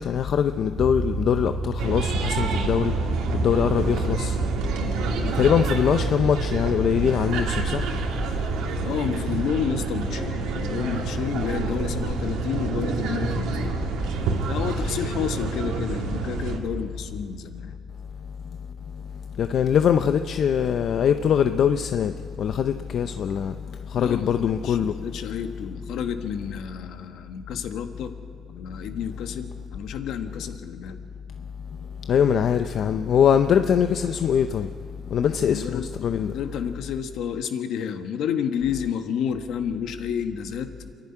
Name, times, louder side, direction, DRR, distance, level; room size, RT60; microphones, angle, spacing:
voice 1, 0.0-2.9 3.3-4.3 5.2-7.8 19.4-22.1 22.4-23.5 23.9-24.9 32.1-34.7 35.1-36.3, left 8 dB, 55° left, 0.6 m, -22 dB
sound 1, 0.8-17.5, right 3 dB, 20° right, 3.4 m, -34 dB
sound 2, 1.8-16.6, right 3 dB, 85° right, 2.3 m, -28 dB
voice 2, 8.8-13.8 14.5-17.7 23.9-28.1 28.5-31.0 35.4-35.9 36.2-40.7, left 8 dB, 75° left, 1.3 m, -30 dB
27.5 x 11.0 x 9.9 m
cardioid pair, 110°, 0 cm